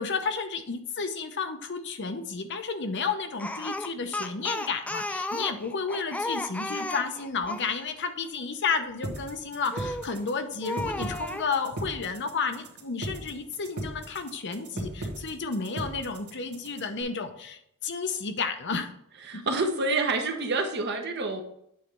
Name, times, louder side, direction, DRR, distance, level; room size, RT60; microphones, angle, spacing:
voice 1, 0.0-18.9 19.3-19.4, left 5 dB, 55° left, 7 dB, 0.8 m, -32 dB
Speech, 3.4-7.7 9.7-10.2 10.6-11.5, left 1 dB, 5° left, 0.3 m, -33 dB
sound 1, 9.0-17.0, right 2 dB, 80° right, 1.8 m, -37 dB
voice 2, 19.2-21.4, right 3 dB, 50° right, 4 dB, 1.0 m, -28 dB
8.7 x 3.3 x 5.3 m, 0.73 s
head